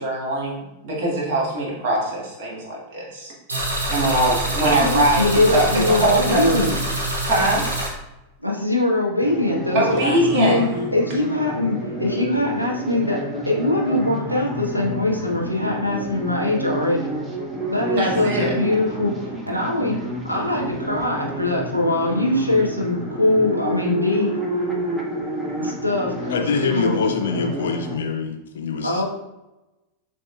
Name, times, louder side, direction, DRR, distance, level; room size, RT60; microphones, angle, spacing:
voice 1, 0.0-3.3 3.9-6.6 7.3-7.7 9.7-10.6 18.0-18.6, right 1 dB, 50° right, -3 dB, 1.4 m, -22 dB
sound 1, 3.5-7.9, right 1 dB, 70° right, 1.1 m, -25 dB
voice 2, 4.6-6.8 8.4-13.2 13.5-17.1 17.7-19.1 19.5-20.0 20.3-24.3 25.6-27.5 28.8-29.0, left 2 dB, 90° right, -2 dB, 0.8 m, -22 dB
sound 2, 9.2-28.0, right 1 dB, 15° right, 0.7 m, -30 dB
voice 3, 26.3-29.0, left 5 dB, 60° left, 4 dB, 0.4 m, -24 dB
6.5 x 2.8 x 2.2 m, 0.97 s
figure-of-eight pair, 90°, 0 cm